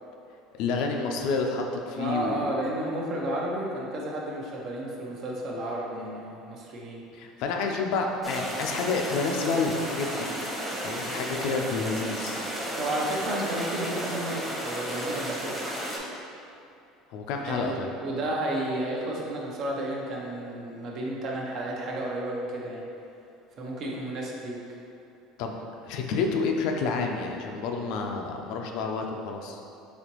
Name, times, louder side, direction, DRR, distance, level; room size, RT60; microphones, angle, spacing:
voice 1, 0.6-2.6 7.1-10.3 10.8-12.4 17.1-17.9 25.4-25.5 25.8-29.6, left 4 dB, 70° left, 2 dB, 0.4 m, -29 dB
voice 2, 2.0-7.0 12.7-15.7 17.5-22.8 23.6-24.6, right 1 dB, 55° right, -2 dB, 0.7 m, -32 dB
sound 1, 8.2-16.0, equal, 10° right, 0.9 m, -33 dB
4.1 x 2.9 x 3.0 m, 2.6 s
supercardioid pair, 95°, 0 cm